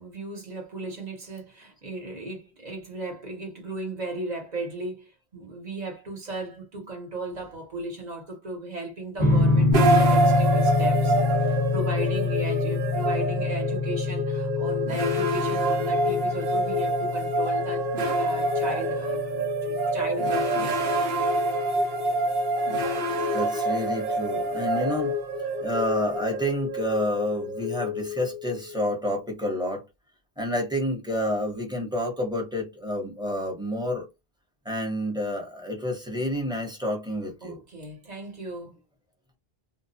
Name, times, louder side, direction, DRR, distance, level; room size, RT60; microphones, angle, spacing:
voice 1, 0.0-17.9 18.1-20.8 37.4-38.8, right 2 dB, 45° right, 1.1 m, -36 dB
sound 1, 9.2-21.7, left 3 dB, 20° right, 1.1 m, -27 dB
sound 2, 9.7-28.8, right 1 dB, 75° right, 0.9 m, -26 dB
voice 2, 20.4-20.7 23.3-25.1 25.6-29.8 30.4-34.1 34.6-37.6, left 1 dB, 5° right, 0.7 m, -29 dB
2.3 x 2.1 x 2.6 m
omnidirectional pair, 1.0 m